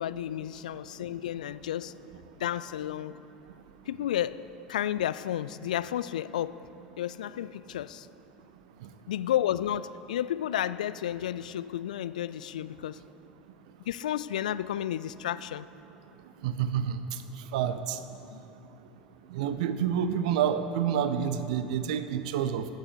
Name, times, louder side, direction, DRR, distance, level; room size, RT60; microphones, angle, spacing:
voice 1, 0.0-1.9 2.4-3.2 3.9-4.4 4.7-6.6 7.0-8.1 9.1-13.0 13.8-15.7 18.3-18.4, left 11 dB, 70° left, 16 dB, 0.3 m, -32 dB
voice 2, 16.4-17.0 17.5-18.0 19.3-22.7, right 8 dB, 65° right, 11 dB, 0.7 m, -28 dB
15.0 x 6.6 x 7.9 m, 2.9 s
figure-of-eight pair, 75°, 4 cm